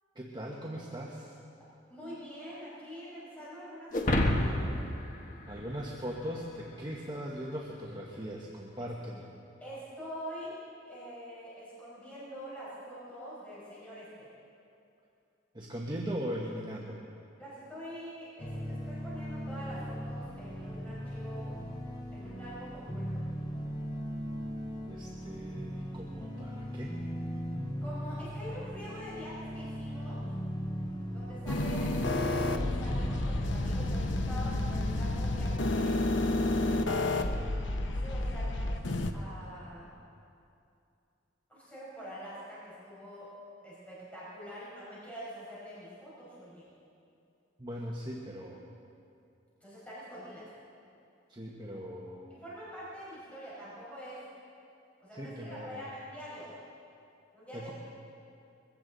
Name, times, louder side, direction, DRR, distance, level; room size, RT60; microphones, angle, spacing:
voice 1, 0.1-1.3 5.5-9.3 15.5-17.0 24.9-27.0 47.6-48.6 51.3-52.4 55.1-55.8 57.5-57.7, equal, 25° right, -2 dB, 1.2 m, -39 dB
voice 2, 1.9-4.9 8.8-8.9 9.6-10.5 10.9-14.3 17.4-21.5 22.1-23.2 27.8-30.2 31.1-37.0 37.8-38.8 39.1-40.0 41.5-43.3 43.6-46.7 49.6-50.5 52.4-54.2 55.0-56.5 57.3-57.7, equal, 10° left, -9 dB, 5.0 m, -45 dB
sound 1, 3.9-6.4, left 1 dB, 45° left, 1.5 m, -30 dB
sound 2, 18.4-35.7, equal, 25° left, 1.6 m, -38 dB
sound 3, 31.5-39.1, left 2 dB, 70° left, 0.9 m, -30 dB
21.5 x 16.0 x 4.0 m, 2.6 s
head